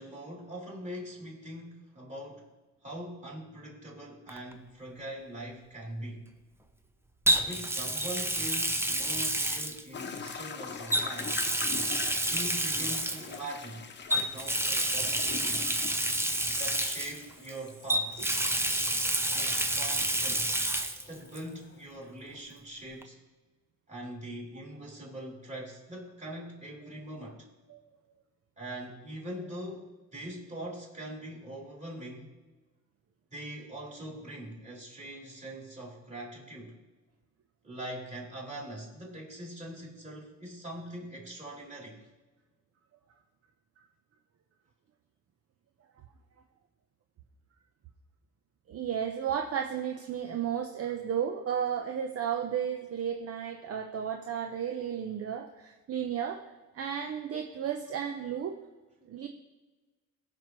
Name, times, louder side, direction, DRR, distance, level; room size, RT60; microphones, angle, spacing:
voice 1, 0.0-2.5 2.8-6.3 7.4-11.4 12.2-15.7 16.6-18.3 19.3-20.6 21.1-23.2 23.9-27.5 28.6-32.3 33.3-36.8 37.6-42.0, right 1 dB, 25° right, -3 dB, 3.5 m, -42 dB
Water tap faucet, 4.3-4.5 7.3-10.3 10.9-13.4 14.1-17.5 17.9-21.0 21.3-21.4 23.0-23.1, right 1 dB, 10° right, 0.7 m, -29 dB
sound 1, 9.9-21.8, left 5 dB, 35° left, 0.9 m, -44 dB
voice 2, 48.7-56.4 56.7-58.6 59.1-59.3, right 8 dB, 50° right, 4 dB, 0.8 m, -33 dB
18.0 x 6.1 x 3.1 m, 1.2 s
cardioid pair, 90°, 30 cm